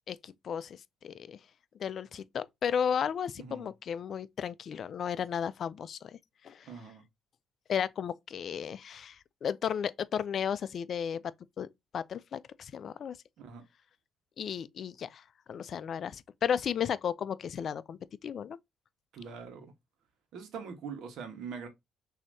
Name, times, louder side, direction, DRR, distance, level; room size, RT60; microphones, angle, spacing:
voice 1, 0.1-1.4 1.8-6.2 6.4-6.7 7.7-11.2 11.6-11.7 11.9-13.2 14.4-15.2 15.5-18.6, left 8 dB, 55° left, 0.4 m, -34 dB
voice 2, 3.4-3.7 6.7-7.0 13.4-13.6 19.1-19.7 20.3-21.7, right 6 dB, 75° right, 1.2 m, -43 dB
6.1 x 2.8 x 2.6 m
cardioid pair, 80°, 0 cm